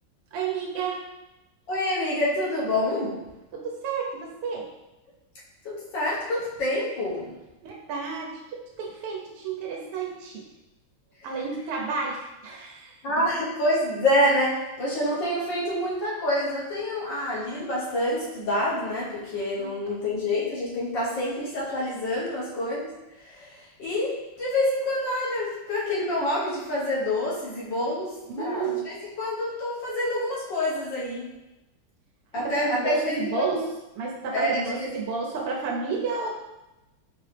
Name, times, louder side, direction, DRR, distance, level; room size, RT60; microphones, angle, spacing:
voice 1, 0.3-1.1 3.5-4.7 7.6-10.4 11.2-13.3 19.6-19.9 28.3-28.9 32.3-33.7 34.0-36.4, right 5 dB, 90° right, -2 dB, 1.6 m, -31 dB
voice 2, 1.7-3.2 5.7-7.3 13.0-22.9 23.2-31.2 32.3-33.3 34.3-34.9, left 1 dB, 60° left, -6 dB, 1.7 m, -27 dB
5.3 x 2.9 x 3.2 m, 0.98 s
omnidirectional pair, 2.4 m